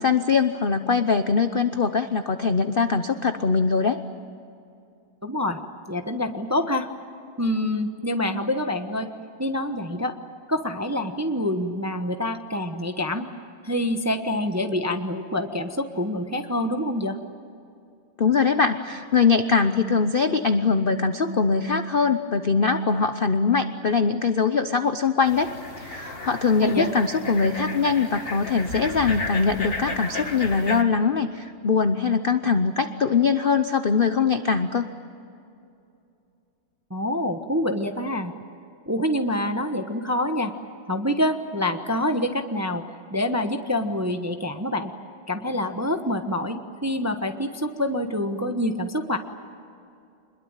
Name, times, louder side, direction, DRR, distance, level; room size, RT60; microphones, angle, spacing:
voice 1, 0.0-4.0 18.2-34.9, left 5 dB, 60° left, 9 dB, 0.5 m, -22 dB
voice 2, 5.2-5.6 5.9-6.9 7.4-9.1 9.4-10.2 10.5-13.3 13.6-17.2 26.6-26.9 36.9-38.3 38.9-40.5 40.9-42.8 43.1-44.9 45.3-49.2, left 1 dB, 15° right, 6 dB, 0.7 m, -26 dB
sound 1, 25.3-30.8, left 2 dB, 30° left, 1.9 m, -34 dB
26.5 x 21.5 x 9.0 m, 2.6 s
omnidirectional pair, 2.2 m